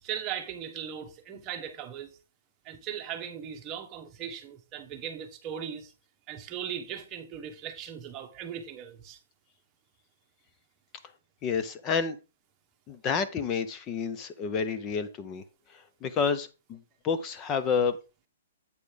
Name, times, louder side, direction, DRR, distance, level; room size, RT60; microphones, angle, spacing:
voice 1, 0.0-2.2 2.6-5.9 6.3-9.2, right 9 dB, 25° right, 1.2 m, -38 dB
voice 2, 11.4-12.2 12.9-15.4 15.7-18.0, left 5 dB, 20° left, 0.6 m, -29 dB
8.4 x 4.2 x 5.0 m
hypercardioid pair, 155°, 0 cm